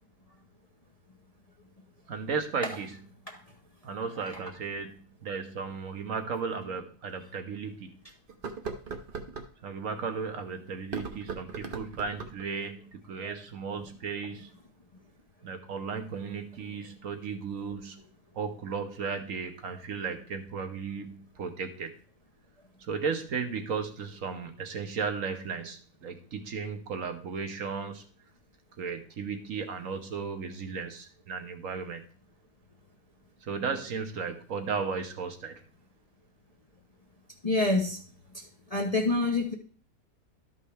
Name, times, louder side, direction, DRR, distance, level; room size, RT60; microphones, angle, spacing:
voice 1, 2.1-3.0 3.8-7.9 9.6-14.5 15.4-18.0 18.3-21.9 22.9-28.0 28.8-32.0 33.4-35.6, right 5 dB, 60° right, 6 dB, 1.2 m, -35 dB
sound 1, 6.3-6.4 7.0-7.1 8.3-9.5 10.8-12.5, right 5 dB, 45° right, 0.8 m, -38 dB
voice 2, 37.4-38.0 38.3-38.4 38.7-39.5, left 2 dB, 30° left, 1 dB, 0.8 m, -27 dB
12.0 x 5.4 x 3.4 m, 0.42 s
omnidirectional pair, 1.7 m